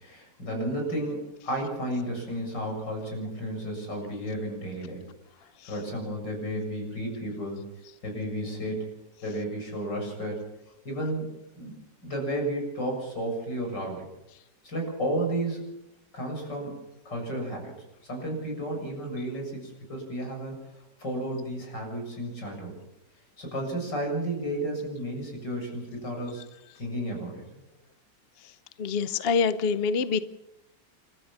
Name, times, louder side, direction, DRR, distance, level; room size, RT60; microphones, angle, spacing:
voice 1, 0.0-5.1 5.6-7.6 8.0-8.9 9.2-10.5 10.8-11.3 11.6-14.1 14.6-15.6 16.1-16.7 17.1-17.7 18.0-20.6 21.0-22.8 23.4-26.4 26.7-27.4, right 1 dB, 70° left, 2 dB, 7.9 m, -32 dB
voice 2, 28.8-30.2, left 5 dB, 50° left, 13 dB, 0.8 m, -25 dB
29.5 x 13.5 x 7.2 m, 0.87 s
omnidirectional pair, 2.0 m